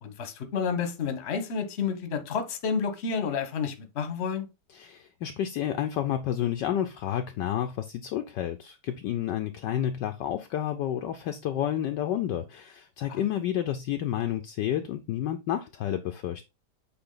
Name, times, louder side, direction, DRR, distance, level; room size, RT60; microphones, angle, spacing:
voice 1, 0.0-4.5 13.1-13.3, left 6 dB, 40° left, 1.0 m, -30 dB
voice 2, 4.7-16.5, left 11 dB, 75° left, 1.1 m, -30 dB
7.9 x 3.4 x 3.9 m
omnidirectional pair, 2.3 m